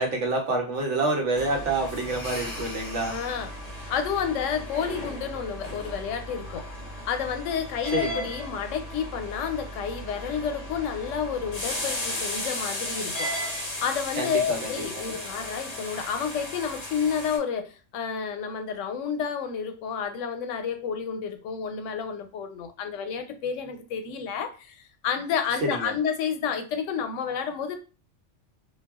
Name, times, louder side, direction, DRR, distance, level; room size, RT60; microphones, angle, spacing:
voice 1, 0.0-3.2 7.9-8.3 14.2-15.1 25.7-25.9, right 2 dB, 75° right, 2 dB, 1.1 m, -28 dB
sound 1, 1.3-17.4, left 1 dB, 40° left, 0.8 m, -35 dB
voice 2, 3.1-6.7 7.0-13.4 13.8-27.8, left 7 dB, 90° left, 7 dB, 0.9 m, -30 dB
2.3 x 2.2 x 3.4 m, 0.34 s
omnidirectional pair, 1.2 m